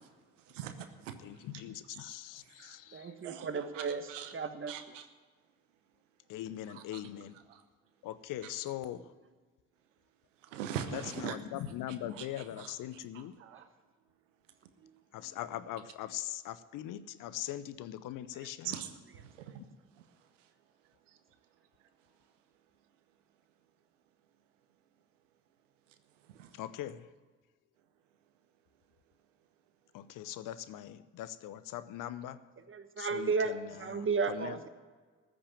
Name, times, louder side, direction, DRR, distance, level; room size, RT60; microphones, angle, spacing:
voice 1, 0.5-1.1 2.0-2.1 2.6-2.8 3.2-4.3 4.7-5.0 6.7-7.0 7.5-7.6 10.5-11.4 12.2-12.3 12.6-12.7 13.4-13.6 18.6-18.9 19.4-19.5 26.4-26.5, right 9 dB, 85° right, 9 dB, 0.9 m, -41 dB
voice 2, 1.2-3.1 6.3-7.3 8.0-9.1 10.9-13.4 15.1-18.8 26.5-27.1 29.9-32.4 33.0-34.6, left 12 dB, 60° left, 15 dB, 0.7 m, -41 dB
voice 3, 2.9-4.9 14.8-14.9 15.2-15.4 32.7-34.7, right 4 dB, 35° right, 10 dB, 1.3 m, -34 dB
14.5 x 6.2 x 10.0 m, 1.4 s
hypercardioid pair, 45°, 36 cm